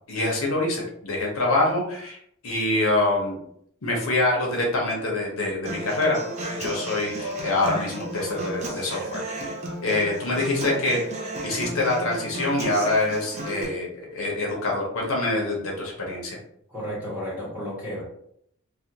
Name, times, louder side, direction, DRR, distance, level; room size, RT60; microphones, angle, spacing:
voice 1, 0.1-2.2 2.4-3.4 3.8-6.2 6.5-9.6 9.8-16.4, left 2 dB, 70° left, -2 dB, 0.7 m, -25 dB
Human voice / Acoustic guitar, 5.6-13.6, right 1 dB, 30° right, 0.5 m, -33 dB
voice 2, 16.7-18.0, equal, 5° right, -8 dB, 1.2 m, -32 dB
2.4 x 2.2 x 2.8 m, 0.69 s
head